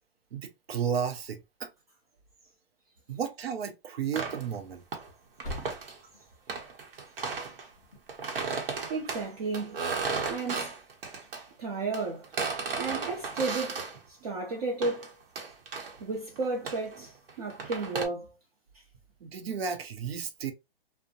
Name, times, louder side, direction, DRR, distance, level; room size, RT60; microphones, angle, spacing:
voice 1, 0.3-1.7 3.1-4.8 5.8-5.9 19.2-20.5, right 7 dB, 90° right, 0.7 m, -33 dB
sound 1, 4.1-5.1 5.4-6.0 6.5-7.7 8.1-11.4 11.9-14.0 14.8-15.1 15.4-16.0 16.4-18.1, right 4 dB, 70° right, 0.9 m, -35 dB
sound 2, 5.2-12.0 12.3-12.4 12.8-12.9, left 2 dB, 5° left, 0.3 m, -48 dB
voice 2, 8.9-9.8 10.3-10.7 11.6-12.3 12.8-15.1 16.0-18.3, right 3 dB, 40° right, 0.6 m, -33 dB
2.5 x 2.1 x 2.7 m
hypercardioid pair, 165°, 30 cm